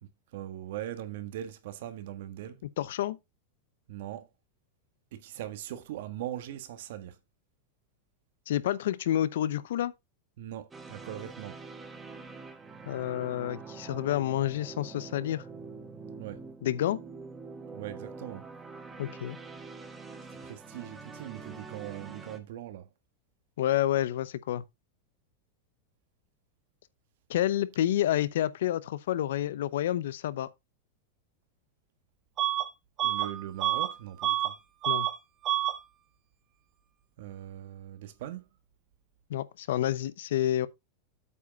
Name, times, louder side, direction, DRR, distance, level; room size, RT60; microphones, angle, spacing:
voice 1, 0.0-2.6 3.9-4.3 5.1-7.2 10.4-11.6 16.2-16.5 17.7-18.5 20.4-22.9 33.0-34.5 37.2-38.4, right 12 dB, 70° right, 1.4 m, -40 dB
voice 2, 2.8-3.2 8.5-9.9 12.9-15.4 16.6-17.0 19.0-19.4 23.6-24.6 27.3-30.5 34.9-35.1 39.3-40.7, left 12 dB, 80° left, 0.7 m, -29 dB
sound 1, 10.7-22.4, right 4 dB, 15° right, 1.6 m, -45 dB
Bus / Alarm, 32.4-32.7 33.0-34.6 34.8-35.2 35.4-35.8, right 13 dB, 35° right, 1.3 m, -28 dB
8.4 x 4.9 x 5.3 m
supercardioid pair, 145°, 0 cm